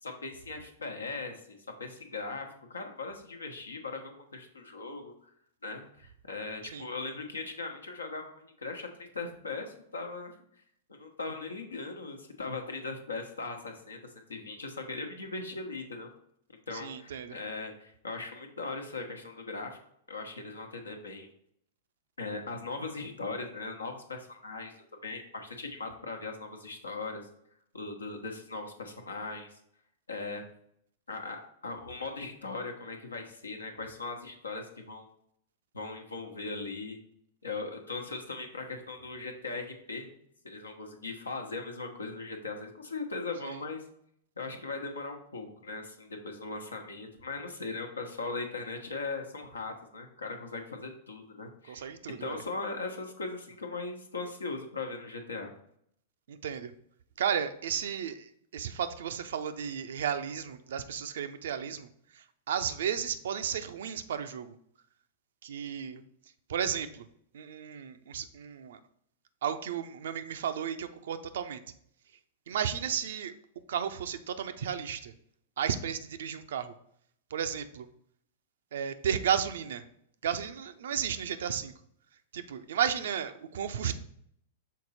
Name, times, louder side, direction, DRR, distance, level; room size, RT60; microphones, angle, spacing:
voice 1, 0.0-5.1 5.6-10.4 10.9-14.0 14.3-16.1 16.7-19.8 20.1-21.3 22.2-24.7 25.0-27.3 27.7-29.5 30.1-30.4 31.1-35.1 35.7-37.0 37.4-40.1 40.4-43.8 44.4-51.9 52.2-55.5, left 3 dB, 75° left, 4 dB, 1.0 m, -39 dB
voice 2, 16.7-17.4 43.4-43.6 51.7-52.4 56.3-56.7 57.2-64.5 65.4-66.0 66.5-67.0 67.3-68.8 69.4-71.6 72.5-73.3 73.7-75.1 75.6-76.7 77.3-77.9 78.7-79.8 80.2-81.7 82.3-84.0, right 8 dB, 60° right, 10 dB, 0.5 m, -33 dB
6.4 x 4.2 x 4.1 m, 0.69 s
figure-of-eight pair, 100°, 0 cm